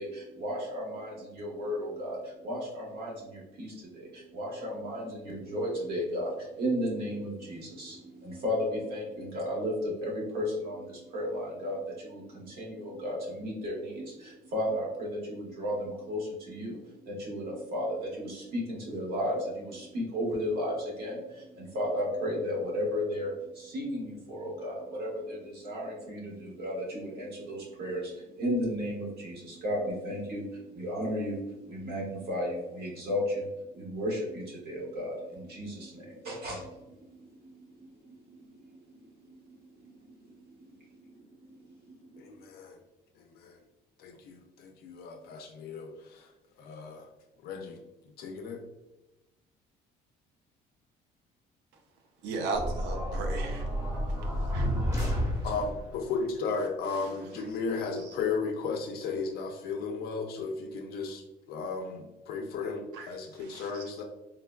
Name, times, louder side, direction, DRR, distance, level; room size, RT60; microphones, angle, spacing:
voice 1, 0.0-42.3, equal, 65° right, -4 dB, 1.3 m, -35 dB
voice 2, 42.2-42.8 43.4-43.5 44.0-46.2 46.6-47.1 47.4-47.8 48.2-48.6 55.4-61.2 61.5-64.0, left 4 dB, 65° left, 3 dB, 0.4 m, -35 dB
voice 3, 52.2-53.7 54.5-54.7 62.9-63.1 63.4-63.8, right 3 dB, 90° right, 3 dB, 0.6 m, -35 dB
sound 1, 52.5-55.9, equal, 20° right, 1.0 m, -30 dB
3.7 x 2.1 x 2.2 m, 1.0 s
cardioid pair, 110°, 17 cm